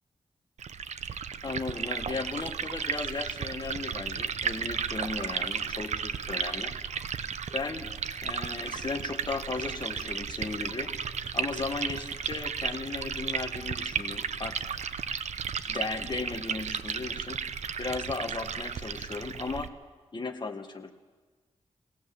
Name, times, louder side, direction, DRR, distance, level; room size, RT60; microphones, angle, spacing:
Liquid, 0.6-19.7, right 7 dB, 85° right, 0.7 m, -34 dB
voice 1, 1.4-6.7 7.5-7.9 8.2-10.9 11.3-14.7 15.7-17.4 17.8-19.7 20.1-20.9, left 3 dB, 40° left, 5 dB, 1.7 m, -36 dB
21.0 x 18.0 x 7.1 m, 1.3 s
wide cardioid pair, 80°, 12 cm